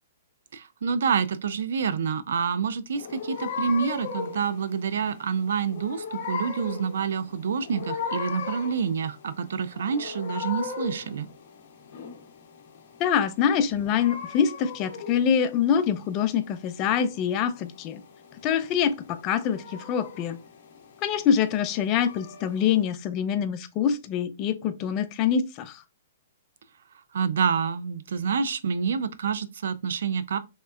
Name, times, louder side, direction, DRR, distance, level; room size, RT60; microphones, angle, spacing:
voice 1, 0.5-11.3 27.1-30.4, right 6 dB, 70° right, 0.4 m, -27 dB
sound 1, 2.9-22.8, left 5 dB, 50° left, 0.7 m, -38 dB
voice 2, 13.0-18.0 18.4-20.4 21.0-25.8, left 8 dB, 30° left, 0.4 m, -25 dB
3.0 x 2.9 x 2.3 m
hypercardioid pair, 145°, 0 cm